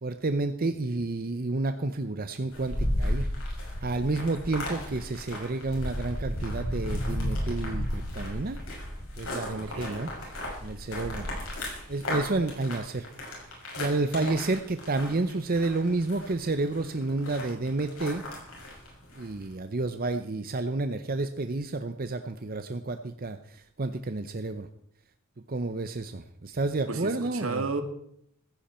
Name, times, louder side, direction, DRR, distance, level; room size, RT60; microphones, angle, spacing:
voice 1, 0.0-3.3 3.8-8.6 9.2-10.1 10.6-11.3 11.9-13.1 13.8-18.2 19.2-24.7 25.5-27.6, right 2 dB, 40° right, 9 dB, 0.7 m, -30 dB
sound 1, 2.5-19.4, left 1 dB, 75° left, 6.6 m, -34 dB
voice 2, 9.5-10.1 26.9-27.8, right 3 dB, 70° right, 7 dB, 2.0 m, -33 dB
15.5 x 15.5 x 4.4 m, 0.71 s
head